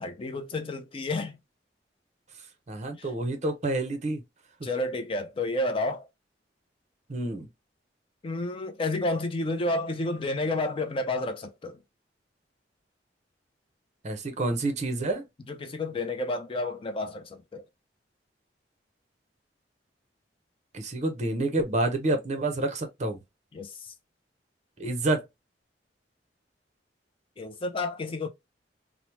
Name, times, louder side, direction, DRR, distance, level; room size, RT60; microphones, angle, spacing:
voice 1, 0.0-1.4 3.0-3.1 4.6-6.1 8.2-11.8 15.5-17.6 23.5-23.9 27.4-28.3, left 2 dB, 30° left, 0.4 m, -30 dB
voice 2, 2.7-4.2 4.6-4.7 7.1-7.5 14.0-15.2 20.7-23.2 24.8-25.2, right 2 dB, 40° right, 0.7 m, -28 dB
2.9 x 2.0 x 2.9 m
head